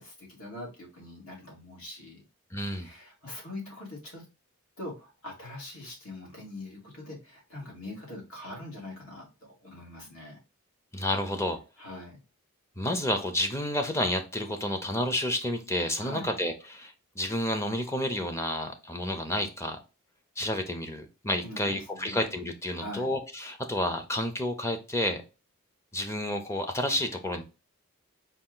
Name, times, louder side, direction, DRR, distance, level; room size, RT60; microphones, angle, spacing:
voice 1, 0.0-2.2 2.7-4.3 4.8-9.3 9.6-10.4 11.8-12.2 16.0-16.3 21.4-22.3 22.8-23.1, left 1 dB, 70° left, -2 dB, 2.0 m, -42 dB
voice 2, 2.5-2.9 10.9-11.6 12.8-19.8 20.4-25.2 25.9-27.4, left 1 dB, 15° left, 6 dB, 0.5 m, -30 dB
4.3 x 2.4 x 3.7 m, 0.30 s
head